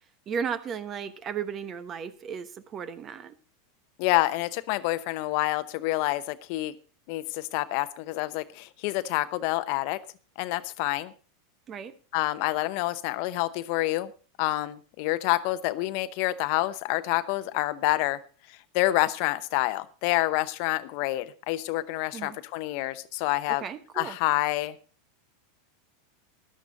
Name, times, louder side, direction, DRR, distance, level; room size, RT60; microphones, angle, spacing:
voice 1, 0.3-3.4 11.7-11.9 22.1-22.4 23.6-24.2, right 7 dB, 35° right, 14 dB, 1.1 m, -35 dB
voice 2, 4.0-6.7 7.1-10.0 10.4-11.1 12.1-14.1 14.4-18.2 18.7-23.6 24.0-24.8, left 18 dB, 60° left, 14 dB, 0.8 m, -27 dB
13.0 x 11.5 x 4.0 m, 0.38 s
hypercardioid pair, 100°, 0 cm